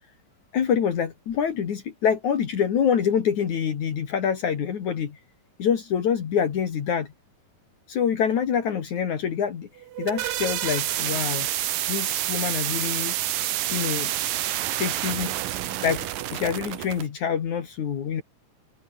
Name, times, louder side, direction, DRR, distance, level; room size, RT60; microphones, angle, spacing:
voice 1, 0.5-5.2 5.6-7.1 7.9-9.7 10.0-11.5 11.9-13.2 13.7-14.1 14.8-15.3 15.8-18.2, left 7 dB, 60° left, 3.5 m, -26 dB
sound 1, 9.8-17.1, right 13 dB, 80° right, 2.9 m, -28 dB
omnidirectional pair, 3.9 m